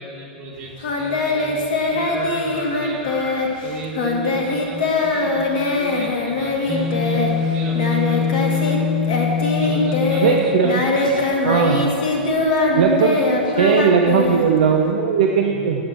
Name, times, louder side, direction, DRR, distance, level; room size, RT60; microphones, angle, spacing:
voice 1, 0.0-3.1 3.6-8.7 9.5-10.3 10.6-11.2 15.4-15.8, right 3 dB, 30° right, -4 dB, 3.3 m, -35 dB
Singing, 0.8-8.8 9.0-14.9, left 3 dB, 50° left, 2.2 m, -21 dB
sound 1, 6.7-10.6, left 6 dB, 5° right, 0.9 m, -23 dB
voice 2, 10.2-10.8 11.4-11.9 12.7-13.1 13.4-15.8, right 6 dB, 55° right, 1 dB, 1.0 m, -18 dB
11.5 x 8.4 x 7.5 m, 2.4 s
figure-of-eight pair, 100°, 6 cm